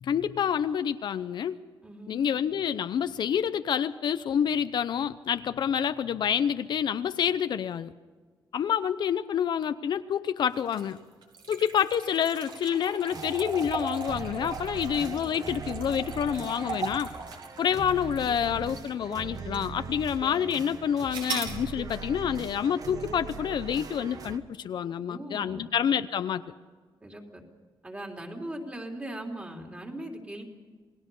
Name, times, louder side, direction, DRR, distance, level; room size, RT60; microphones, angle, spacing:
voice 1, 0.0-1.6 2.1-7.9 8.5-11.0 11.5-17.1 17.6-26.4, left 8 dB, 60° left, 11 dB, 0.7 m, -28 dB
voice 2, 1.8-2.2 24.9-25.7 27.0-27.4 27.8-30.4, right 1 dB, 15° right, 1 dB, 3.2 m, -39 dB
sound 1, 10.6-19.0 19.5-19.6 21.1-21.6, right 4 dB, 70° right, 4.6 m, -38 dB
sound 2, 13.1-24.4, right 5 dB, 45° right, 1.2 m, -40 dB
28.5 x 19.5 x 5.5 m, 1.4 s
wide cardioid pair, 150°, 8 cm